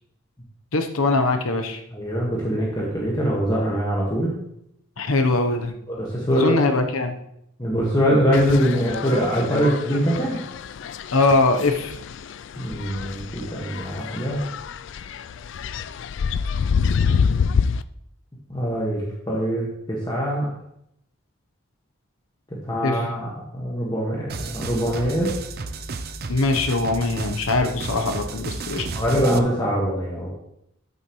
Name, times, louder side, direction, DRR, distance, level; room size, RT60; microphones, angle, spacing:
voice 1, 0.7-1.8 5.0-5.7 6.3-7.1 11.1-11.9 22.8-23.0 26.3-28.9, left 2 dB, 75° left, 5 dB, 0.9 m, -21 dB
voice 2, 1.9-4.3 5.9-6.6 7.6-10.4 12.6-14.4 18.5-19.0 19.3-20.5 22.7-25.3 28.8-30.3, equal, 20° left, -4 dB, 1.6 m, -23 dB
sound 1, 8.3-17.8, left 6 dB, 55° left, 0.3 m, -27 dB
sound 2, 24.3-29.4, right 3 dB, 45° right, 0.5 m, -32 dB
13.0 x 7.1 x 3.1 m, 0.78 s
head